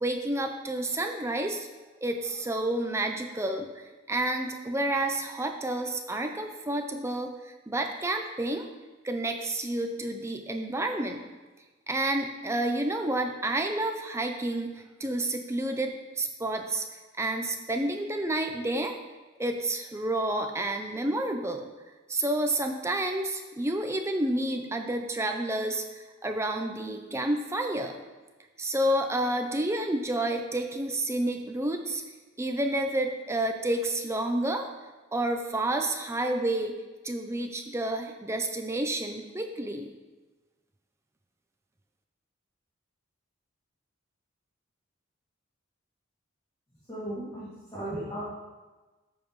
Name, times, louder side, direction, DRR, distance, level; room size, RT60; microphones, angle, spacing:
voice 1, 0.0-1.7 2.0-8.7 9.0-11.2 11.9-14.7 15.0-16.8 17.2-19.0 19.4-21.6 22.1-28.0 28.6-32.0 32.4-34.7 35.1-36.8 37.0-39.9, right 1 dB, 15° right, 4 dB, 0.6 m, -30 dB
voice 2, 46.9-47.5 47.7-48.2, right 1 dB, 20° left, -10 dB, 2.5 m, -35 dB
13.5 x 7.3 x 3.2 m, 1.2 s
head